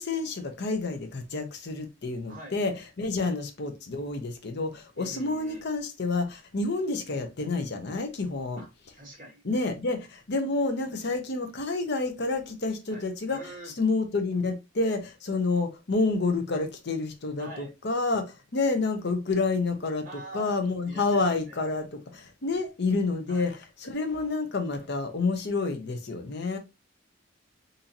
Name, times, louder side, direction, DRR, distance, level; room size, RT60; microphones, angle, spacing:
voice 1, 0.0-8.6 9.4-13.5 13.8-26.6, left 3 dB, 55° left, 0.7 m, -29 dB
voice 2, 2.3-2.6 3.2-3.3 5.0-5.7 8.6-8.7 8.9-9.4 12.9-13.7 17.4-17.7 20.0-20.6 20.9-21.6 23.3-23.5, right 1 dB, 40° right, 1.8 m, -44 dB
3.9 x 2.7 x 2.8 m
head